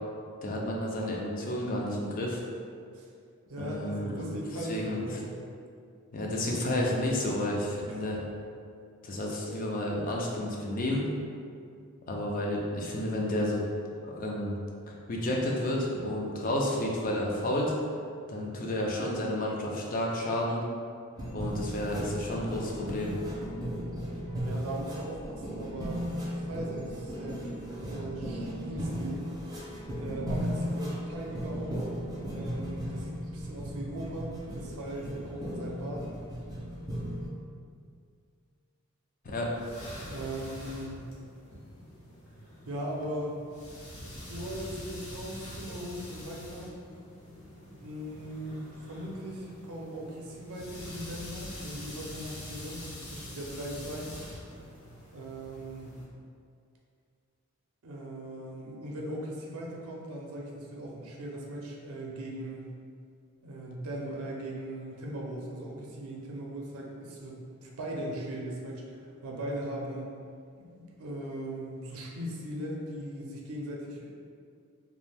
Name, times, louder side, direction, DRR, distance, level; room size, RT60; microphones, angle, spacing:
voice 1, 0.4-2.4 3.6-4.3 4.7-5.0 6.1-8.2 9.0-11.1 12.1-13.6 14.0-14.6 14.9-17.7 18.3-20.6 21.3-23.1 39.2-39.5, left 1 dB, 40° left, -2 dB, 0.4 m, -31 dB
voice 2, 3.5-5.4 7.9-8.0 18.3-18.6 24.4-29.2 30.0-31.8 32.3-36.1 40.1-41.1 42.7-43.4 44.3-46.7 47.8-52.8 53.1-54.1 55.1-56.0 57.8-62.7 63.4-70.1 70.6-74.1, right 1 dB, 80° right, -2 dB, 0.5 m, -39 dB
sound 1, 21.2-37.3, equal, 15° right, 0.5 m, -36 dB
sound 2, 39.3-56.0, equal, 70° left, 0.7 m, -45 dB
2.4 x 2.1 x 3.3 m, 2.3 s
head